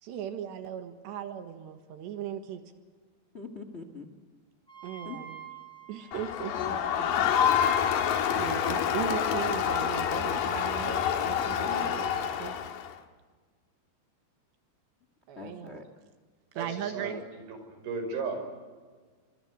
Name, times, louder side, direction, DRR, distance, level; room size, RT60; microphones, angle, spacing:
voice 1, 0.0-2.6 4.8-5.4 5.9-6.5 8.3-12.6 15.3-15.8 16.5-17.2, right 9 dB, 80° right, 7 dB, 3.8 m, -37 dB
voice 2, 3.3-4.1 5.0-5.2 6.5-7.6 11.6-11.9 15.3-15.8, left 3 dB, 90° left, 8 dB, 0.5 m, -43 dB
Wind instrument woodwind instrument, 4.7-9.6, right 9 dB, ahead, 6.1 m, -50 dB
Crowd, 6.1-12.9, left 8 dB, 60° left, 2.8 m, -27 dB
voice 3, 16.6-17.1 17.5-18.4, right 4 dB, 60° right, 5 dB, 7.2 m, -35 dB
26.0 x 23.5 x 8.0 m, 1.5 s
omnidirectional pair, 5.0 m